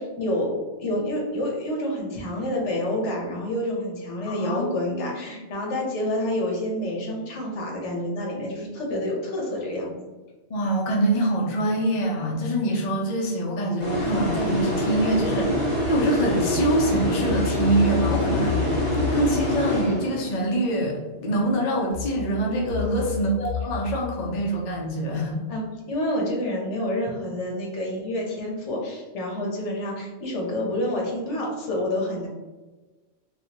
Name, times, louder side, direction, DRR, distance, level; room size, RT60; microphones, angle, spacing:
voice 1, 0.0-9.9 22.8-23.2 25.5-32.3, left 1 dB, 75° left, -1 dB, 1.1 m, -28 dB
voice 2, 4.3-5.4 10.5-25.4, right 1 dB, 45° left, -1 dB, 0.6 m, -25 dB
sound 1, 13.8-20.5, equal, 30° left, 0.9 m, -25 dB
sound 2, 15.1-20.1 21.9-24.9, left 9 dB, 70° right, 0.9 m, -33 dB
3.5 x 2.4 x 2.8 m, 1.2 s
omnidirectional pair, 1.2 m